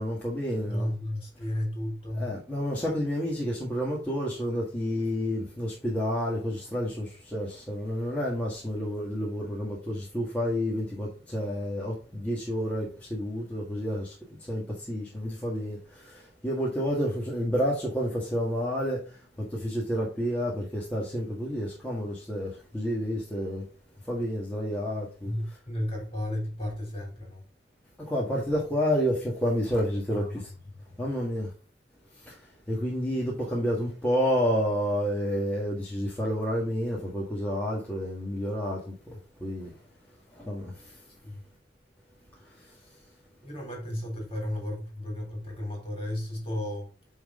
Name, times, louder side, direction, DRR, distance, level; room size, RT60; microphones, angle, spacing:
voice 1, 0.0-0.9 2.1-14.1 14.5-19.0 19.4-23.6 24.1-25.3 28.0-30.5 31.0-31.5 32.3-32.4 32.7-38.8 39.1-39.7 40.4-40.7, equal, 10° left, 1.8 m, -30 dB
voice 2, 0.7-2.3 25.2-27.4 30.1-30.2 30.9-31.0 41.2-41.4 43.4-46.9, left 1 dB, 30° left, 3.4 m, -33 dB
9.3 x 3.9 x 3.8 m
head